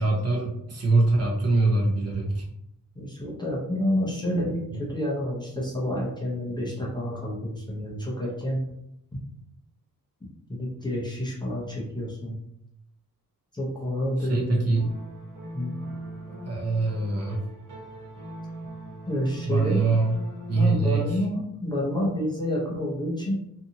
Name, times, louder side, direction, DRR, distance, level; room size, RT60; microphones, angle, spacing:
voice 1, 0.0-2.5 14.3-14.9 16.4-17.5 19.4-20.2 20.5-21.1, right 3 dB, 45° right, 0 dB, 0.6 m, -23 dB
voice 2, 3.0-8.6 9.1-9.2 10.2-12.4 13.5-14.7 15.5-15.7 19.1-19.9 20.5-23.3, left 1 dB, 15° left, -4 dB, 0.5 m, -29 dB
sound 1, 14.7-21.2, right 1 dB, 65° right, 0.9 m, -40 dB
2.6 x 2.5 x 2.7 m, 0.78 s
wide cardioid pair, 180°, 35 cm